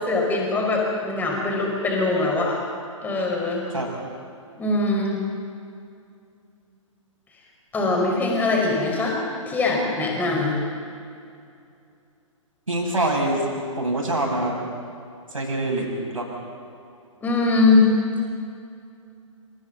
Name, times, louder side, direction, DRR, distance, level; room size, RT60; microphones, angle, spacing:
voice 1, 0.0-2.6 3.0-3.7 4.6-5.2 7.7-9.2 9.5-10.6 17.2-17.9, left 3 dB, 10° left, -1 dB, 5.1 m, -22 dB
voice 2, 12.7-13.4 13.8-14.6 15.3-15.9 16.1-16.3, right 1 dB, 75° right, -1 dB, 7.1 m, -24 dB
29.0 x 27.5 x 4.0 m, 2.5 s
figure-of-eight pair, 125°, 17 cm